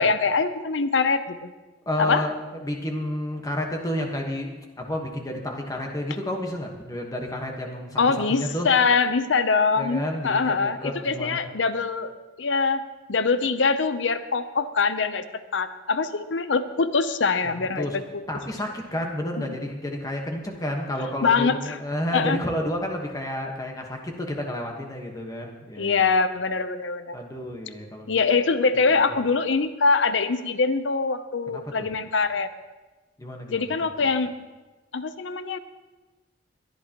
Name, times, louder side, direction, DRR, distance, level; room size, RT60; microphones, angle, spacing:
voice 1, 0.0-1.5 2.0-2.3 8.0-12.1 12.4-12.8 13.1-15.3 15.5-18.0 19.4-19.5 21.2-21.8 22.1-22.4 25.8-27.2 28.1-32.5 33.5-34.3 34.9-35.6, left 4 dB, 80° left, 11 dB, 0.7 m, -23 dB
voice 2, 1.9-2.3 2.6-4.5 4.8-8.7 9.8-10.5 10.8-11.4 17.4-17.9 18.3-26.1 27.1-28.1 29.1-29.2 31.5-31.9 33.2-33.6, left 1 dB, 20° left, 1 dB, 1.3 m, -30 dB
22.0 x 11.0 x 3.0 m, 1.2 s
head